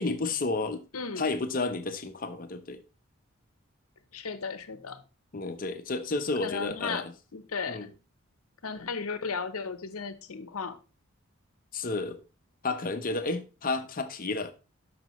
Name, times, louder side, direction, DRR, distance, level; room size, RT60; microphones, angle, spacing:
voice 1, 0.0-0.8 1.2-2.8 5.3-7.1 7.7-7.9 11.7-12.2 12.6-14.5, left 3 dB, 40° left, 0.8 m, -31 dB
voice 2, 0.9-1.3 4.1-5.0 6.4-7.0 7.3-7.9 8.6-10.8, left 5 dB, 85° left, 0.9 m, -35 dB
12.0 x 5.0 x 3.1 m
head